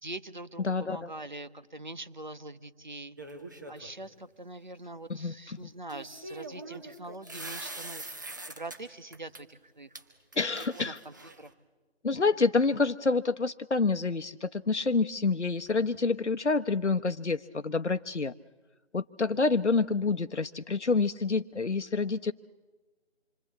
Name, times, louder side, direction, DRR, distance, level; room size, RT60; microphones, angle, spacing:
voice 1, 0.0-3.2 3.7-8.0 8.6-9.9 10.8-11.5, right 2 dB, 45° right, 12 dB, 1.3 m, -43 dB
voice 2, 0.6-1.1 5.2-5.6 10.4-11.0 12.0-18.3 18.9-22.3, left 4 dB, 90° left, 9 dB, 1.0 m, -28 dB
sound 1, 3.2-3.9 5.9-8.8 9.1-9.4 9.9-10.0 10.3-11.5, right 2 dB, 15° right, 1.4 m, -43 dB
27.0 x 23.5 x 8.5 m, 1.3 s
figure-of-eight pair, 170°, 34 cm